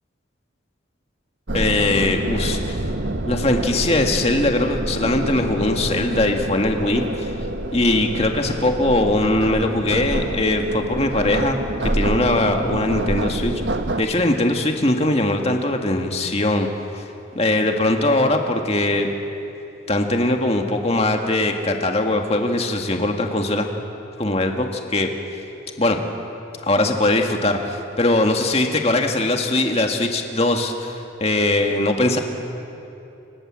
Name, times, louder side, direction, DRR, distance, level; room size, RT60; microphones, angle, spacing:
voice 1, 1.5-2.8 3.3-7.3 7.7-13.6 14.0-16.7 16.9-17.0 17.3-19.1 19.9-23.7 24.2-25.1 25.8-26.0 26.6-32.2, left 2 dB, 35° left, 3 dB, 2.1 m, -21 dB
sound 1, 1.5-14.0, right 1 dB, 70° right, 1.5 m, -27 dB
29.5 x 26.5 x 7.7 m, 2.8 s
head